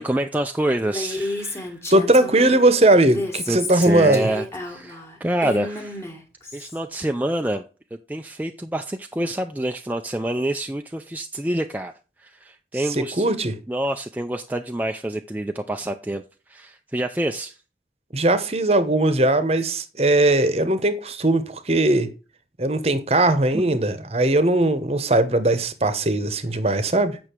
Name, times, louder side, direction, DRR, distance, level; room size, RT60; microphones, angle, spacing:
voice 1, 0.0-1.8 3.5-6.0 6.5-7.6 8.1-11.9 12.2-13.3 13.7-16.2 16.5-17.6 23.5-23.6, right 1 dB, 10° right, 0.4 m, -27 dB
Female speech woman speaking, 0.8-2.6 3.0-6.8, left 2 dB, 15° left, 1.5 m, -31 dB
voice 2, 1.9-4.3 12.9-13.5 18.1-22.1 22.6-27.2, right 1 dB, 35° right, 0.9 m, -19 dB
8.5 x 6.1 x 4.5 m
head